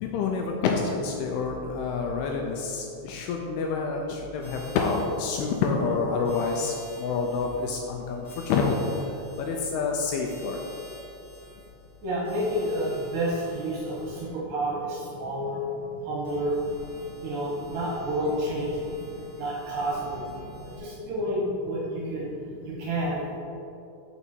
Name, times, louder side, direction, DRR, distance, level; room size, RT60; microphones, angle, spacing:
voice 1, 0.0-6.7 7.0-8.8 9.5-10.6, left 5 dB, 80° left, 1 dB, 2.4 m, -28 dB
sound 1, 4.4-14.3 16.2-20.8, equal, 55° left, 2.6 m, -48 dB
voice 2, 12.0-15.6 16.0-16.6 17.2-18.9 19.4-20.2 20.6-22.3 22.6-23.4, right 1 dB, 70° right, -4 dB, 2.3 m, -29 dB
6.8 x 5.9 x 4.5 m, 2.7 s
omnidirectional pair, 4.9 m